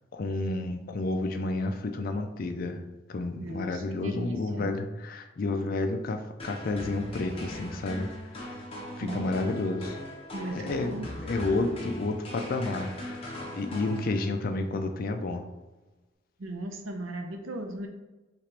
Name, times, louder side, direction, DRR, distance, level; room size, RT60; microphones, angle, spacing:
voice 1, 0.1-2.8 3.1-8.6 9.0-10.0 10.4-13.3 13.5-15.5, left 2 dB, 45° left, 5 dB, 0.4 m, -31 dB
voice 2, 3.4-4.7 9.0-9.3 10.3-11.1 16.4-17.9, right 1 dB, 85° right, 4 dB, 0.7 m, -37 dB
sound 1, 6.4-14.5, left 1 dB, 30° left, 0.9 m, -40 dB
5.8 x 2.5 x 3.3 m, 1.1 s
head